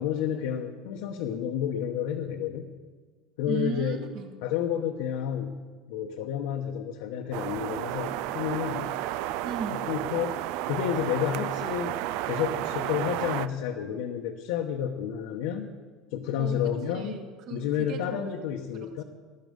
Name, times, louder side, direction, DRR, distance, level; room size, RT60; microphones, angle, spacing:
voice 1, 0.0-2.7 3.4-4.0 4.4-5.6 5.9-8.9 9.9-10.3 10.7-12.0 12.3-15.7 16.1-17.2 17.5-19.0, left 9 dB, 75° left, 2 dB, 1.1 m, -30 dB
voice 2, 3.5-4.3 9.4-9.9 16.4-16.6 16.9-18.3, right 5 dB, 40° right, 5 dB, 1.6 m, -35 dB
sound 1, 7.3-13.5, right 14 dB, 55° right, 0.4 m, -32 dB
20.0 x 12.0 x 5.3 m, 1.5 s
cardioid pair, 180°, 0 cm